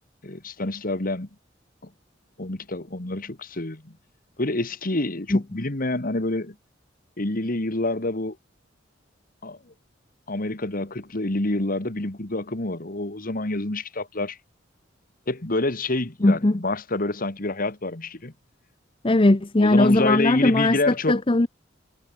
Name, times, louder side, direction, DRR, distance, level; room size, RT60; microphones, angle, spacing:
voice 1, 0.2-1.3 2.4-4.0 4.4-6.6 7.2-8.4 9.4-9.6 10.3-14.4 15.3-18.3 19.6-21.2, left 2 dB, 50° left, 1.9 m, -27 dB
voice 2, 16.2-16.6 19.0-21.5, left 2 dB, 30° left, 0.8 m, -19 dB
head